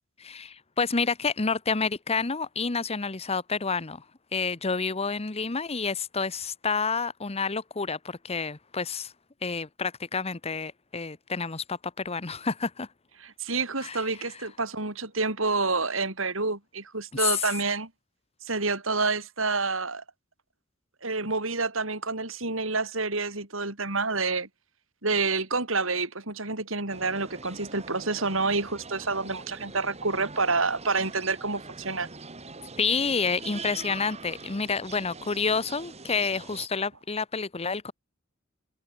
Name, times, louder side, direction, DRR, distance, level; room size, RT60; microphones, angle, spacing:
voice 1, 0.2-4.0 4.3-9.1 9.4-12.9 13.8-14.0 17.2-17.5 32.8-37.9, left 5 dB, 30° left, 1.0 m, -29 dB
voice 2, 13.2-17.9 18.4-20.0 21.0-24.5 25.0-32.1, right 3 dB, 75° right, 6.0 m, -28 dB
sound 1, 26.9-36.7, right 4 dB, 35° right, 4.1 m, -43 dB
head